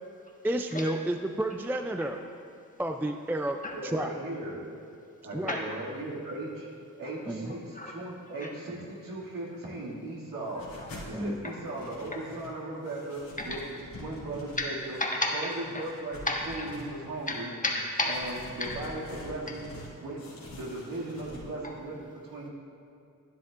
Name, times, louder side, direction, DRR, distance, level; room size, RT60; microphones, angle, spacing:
voice 1, 0.4-2.2 2.8-4.1 5.3-5.6 7.3-7.6 11.1-11.4, right 1 dB, 5° right, 6 dB, 0.3 m, -31 dB
voice 2, 3.7-4.6 5.2-6.7 7.0-10.7 11.0-13.7 13.9-15.0 15.3-17.5 18.0-22.5, right 2 dB, 75° right, -5 dB, 2.2 m, -38 dB
sound 1, 10.4-11.1 11.5-12.6 12.8-15.0 15.5-17.4 17.9-19.9 20.2-21.4, left 1 dB, 90° left, 2.2 m, -46 dB
voice 3, 15.0-15.8 16.3-16.4 17.3-18.2 18.6-18.7, left 2 dB, 25° left, -1 dB, 1.4 m, -31 dB
11.5 x 10.5 x 2.5 m, 2.6 s
cardioid pair, 75°, 33 cm